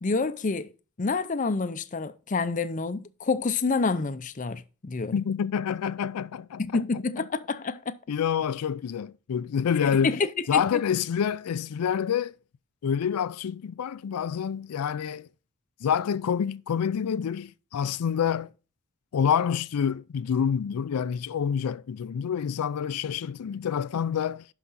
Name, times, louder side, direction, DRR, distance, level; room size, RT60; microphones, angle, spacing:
voice 1, 0.0-0.7 1.0-5.1 6.6-7.9 10.0-10.6, left 4 dB, 35° left, 0.5 m, -28 dB
voice 2, 5.1-6.8 8.1-10.1 10.5-12.3 12.8-15.3 15.8-18.5 19.1-24.5, left 7 dB, 90° left, 0.4 m, -27 dB
11.5 x 4.9 x 4.1 m
head